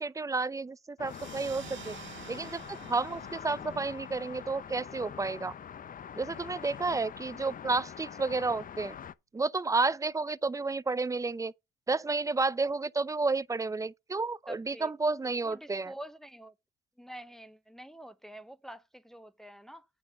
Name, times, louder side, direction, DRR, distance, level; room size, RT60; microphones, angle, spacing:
voice 1, 0.0-2.0 2.3-5.5 6.2-8.9 9.3-11.5 11.9-15.9, right 3 dB, 15° right, 0.4 m, -31 dB
sound 1, 1.0-9.1, left 8 dB, 45° left, 0.6 m, -44 dB
sound 2, 1.0-6.1, right 11 dB, 75° right, 1.2 m, -51 dB
voice 2, 14.5-14.9 15.4-16.5 17.0-19.9, equal, ahead, 0.8 m, -47 dB
8.9 x 3.8 x 6.9 m
cardioid pair, 90°, 20 cm